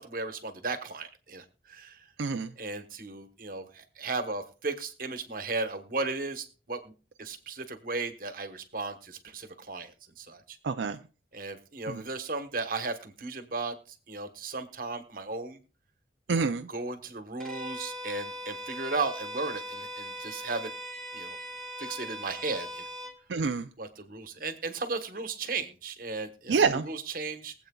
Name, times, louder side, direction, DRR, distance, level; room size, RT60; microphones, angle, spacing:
voice 1, 0.0-2.0 2.6-6.9 7.2-10.6 11.3-13.7 14.1-15.6 16.3-20.7 21.1-21.4 21.8-22.8 23.8-27.5, right 3 dB, 50° right, 8 dB, 1.2 m, -35 dB
voice 2, 2.2-2.5 10.6-11.0 11.9-12.0 16.3-16.7 23.3-23.7 26.5-26.9, right 5 dB, 80° right, 7 dB, 0.5 m, -27 dB
Bowed string instrument, 17.4-23.2, equal, ahead, 1.3 m, -40 dB
23.0 x 8.0 x 2.3 m, 0.35 s
head